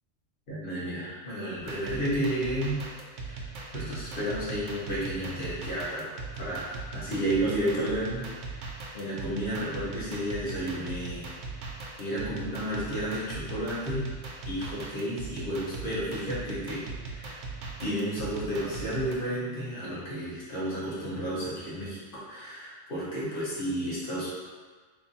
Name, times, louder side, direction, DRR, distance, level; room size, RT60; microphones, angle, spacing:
voice 1, 0.5-2.9 3.2-11.3 12.0-14.1 14.4-17.4 17.8-24.3, right 1 dB, 45° left, -9 dB, 1.4 m, -32 dB
sound 1, 1.6-19.1, right 3 dB, 85° right, 1.0 m, -39 dB
3.1 x 2.6 x 4.0 m, 1.4 s
omnidirectional pair, 1.3 m